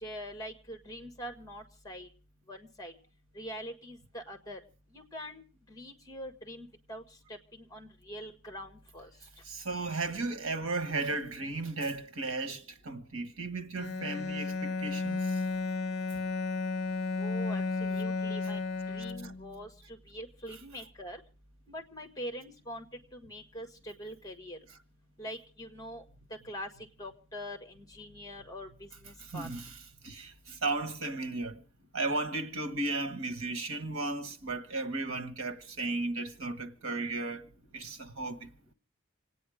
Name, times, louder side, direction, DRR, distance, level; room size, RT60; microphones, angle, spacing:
voice 1, 0.0-2.1 2.5-2.9 3.3-4.6 4.9-5.4 5.7-7.0 7.5-9.1 17.2-18.6 18.9-19.7 20.1-21.2 21.7-22.8 23.1-24.6 25.2-26.0 26.4-26.7 27.0-29.5, equal, 15° left, 1.7 m, -43 dB
voice 2, 9.4-15.4 19.2-19.3 29.2-29.7 30.0-31.6 31.9-37.4 37.7-38.5, right 3 dB, 80° right, 1.5 m, -35 dB
Bowed string instrument, 13.8-19.6, left 3 dB, 55° left, 0.9 m, -33 dB
26.5 x 9.4 x 5.0 m
head